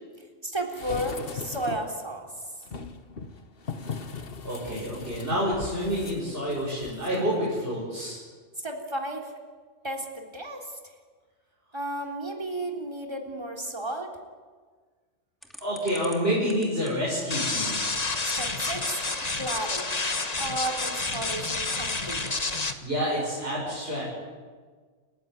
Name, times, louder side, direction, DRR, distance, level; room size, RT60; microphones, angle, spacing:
voice 1, 0.2-2.3 8.6-9.3 9.8-10.8 11.7-14.1 18.3-19.0 19.4-19.9 20.4-22.4, right 1 dB, 20° right, 4 dB, 3.6 m, -33 dB
sound 1, 0.7-2.0 2.6-7.2 7.5-7.6, left 5 dB, 55° left, 1.4 m, -38 dB
voice 2, 4.4-8.2 15.6-17.8 22.8-24.0, equal, 55° right, -6 dB, 6.9 m, -28 dB
sound 2, 15.4-22.6, equal, ahead, 2.6 m, -45 dB
sound 3, 17.3-22.7, left 3 dB, 35° left, 1.5 m, -29 dB
29.5 x 15.0 x 9.6 m, 1.5 s
omnidirectional pair, 1.2 m